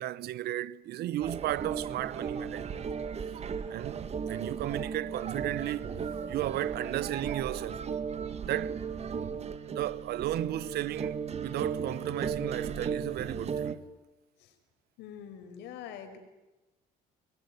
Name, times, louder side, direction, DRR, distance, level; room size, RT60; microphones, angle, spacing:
voice 1, 0.0-2.9 3.3-3.4 3.7-5.9 6.3-7.8 8.4-8.8 9.4-13.8, right 14 dB, 70° right, 1.0 m, -34 dB
sound 1, 1.2-13.7, right 6 dB, 40° right, 2.0 m, -36 dB
voice 2, 15.0-16.2, left 8 dB, 85° left, 5.3 m, -44 dB
25.0 x 22.0 x 9.6 m
cardioid pair, 110°, 17 cm